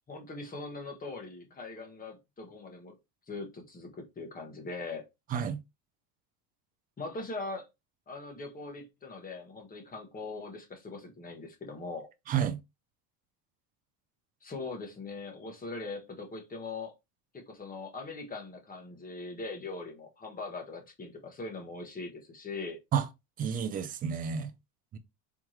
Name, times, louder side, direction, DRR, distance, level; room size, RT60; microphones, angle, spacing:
voice 1, 0.1-2.9 3.3-5.0 7.0-7.7 8.1-12.1 14.4-16.9 17.3-22.8, left 3 dB, 15° left, 1.3 m, -41 dB
voice 2, 12.3-12.6 22.9-23.1 23.4-24.5 24.9-25.0, right 8 dB, 20° right, 0.3 m, -30 dB
4.6 x 3.6 x 3.0 m
cardioid pair, 145°, 48 cm